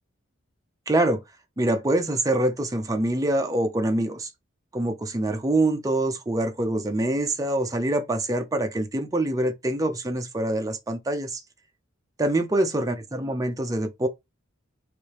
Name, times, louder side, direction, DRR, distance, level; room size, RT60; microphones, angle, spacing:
voice 1, 0.9-1.2 1.6-4.3 4.7-11.4 12.2-14.1, right 1 dB, 15° right, 0.5 m, -25 dB
3.3 x 2.6 x 3.0 m
head